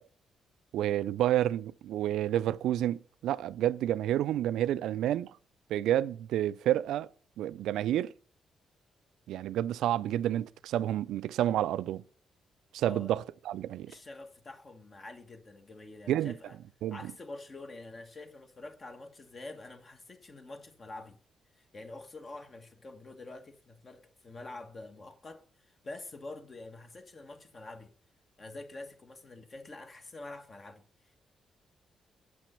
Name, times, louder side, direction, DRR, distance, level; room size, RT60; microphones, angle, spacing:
voice 1, 0.7-5.3 5.7-7.1 7.4-8.1 9.3-12.0 12.7-13.9 16.1-16.3 16.8-17.0, right 12 dB, 80° right, 0.3 m, -29 dB
voice 2, 12.8-13.1 13.9-16.6 16.9-21.2 21.5-27.9 28.4-31.2, left 2 dB, 45° left, 1.5 m, -47 dB
7.7 x 6.0 x 5.5 m
supercardioid pair, 55°, 0 cm